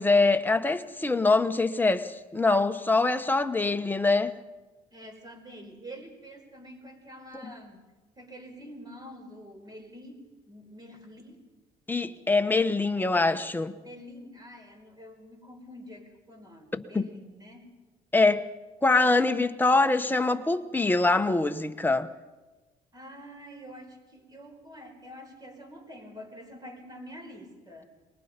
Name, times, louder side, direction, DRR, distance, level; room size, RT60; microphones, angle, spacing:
voice 1, 0.0-4.3 11.9-13.8 16.7-17.1 18.1-18.4 18.8-22.1, left 3 dB, 10° left, 1.2 m, -24 dB
voice 2, 4.9-11.5 13.8-17.7 22.9-27.9, equal, 25° right, 5.0 m, -47 dB
23.5 x 21.0 x 5.3 m
cardioid pair, 110°, 17 cm